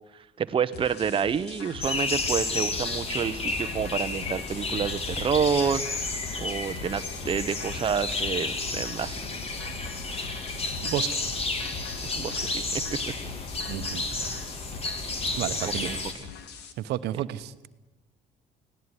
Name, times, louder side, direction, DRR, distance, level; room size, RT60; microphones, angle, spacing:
voice 1, 0.1-9.2 12.0-12.8 14.1-14.4 15.6-16.2, right 7 dB, 30° right, 9 dB, 0.8 m, -29 dB
sound 1, 0.7-16.7, left 6 dB, 80° left, 2.3 m, -43 dB
sound 2, 1.8-16.1, left 3 dB, 35° left, 2.7 m, -31 dB
voice 2, 10.8-11.2 13.7-14.0 15.4-15.9 16.8-17.5, right 13 dB, 80° right, 12 dB, 1.0 m, -31 dB
18.5 x 17.5 x 9.8 m, 1.1 s
cardioid pair, 110°, 17 cm